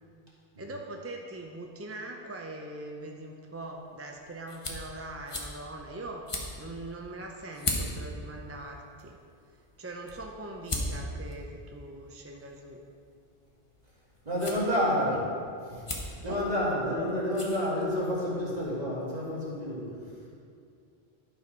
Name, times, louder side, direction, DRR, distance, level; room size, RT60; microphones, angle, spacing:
voice 1, 0.6-6.3 6.6-9.2 9.8-12.8 14.5-15.2 16.2-16.5, right 2 dB, 20° right, 1 dB, 0.4 m, -41 dB
sound 1, 3.5-18.3, left 1 dB, 30° left, 1.0 m, -40 dB
voice 2, 14.2-15.2 15.7-15.9 16.2-20.3, left 1 dB, 40° right, -7 dB, 2.4 m, -29 dB
11.0 x 4.7 x 5.3 m, 2.4 s
omnidirectional pair, 1.0 m